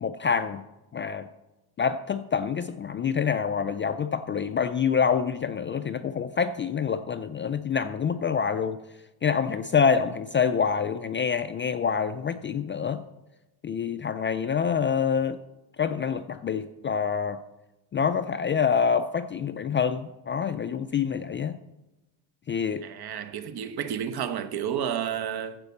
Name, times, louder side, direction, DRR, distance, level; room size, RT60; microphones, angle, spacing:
voice 1, 0.0-0.6 0.9-1.3 1.8-8.8 9.2-13.0 13.6-15.4 15.8-17.4 17.9-21.6 22.5-22.8, left 6 dB, 30° left, 0.3 m, -26 dB
voice 2, 22.8-25.6, right 9 dB, 55° right, 1.1 m, -31 dB
15.0 x 5.2 x 7.1 m
cardioid pair, 120°, 47 cm